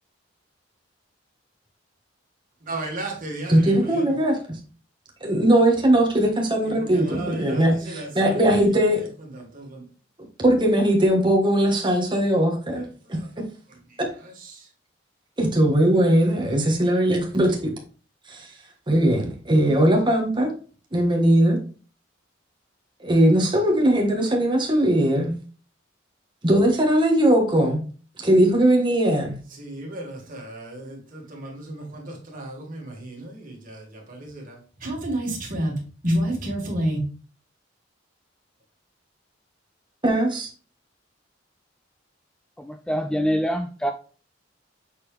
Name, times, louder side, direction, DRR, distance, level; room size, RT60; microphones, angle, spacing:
voice 1, 2.6-4.1 6.8-8.1 9.5-9.8 29.6-35.7 36.0-37.0, right 1 dB, 45° right, 2.2 m, -31 dB
voice 2, 3.5-4.4 5.2-9.0 10.4-12.8 14.0-14.1 15.4-17.7 18.3-18.5 18.9-20.5 20.9-21.6 23.0-25.3 26.4-27.8 28.2-29.3 40.0-40.5, right 1 dB, 25° right, 1.5 m, -19 dB
voice 3, 42.6-43.9, equal, 5° left, 0.3 m, -25 dB
6.7 x 4.1 x 3.4 m
head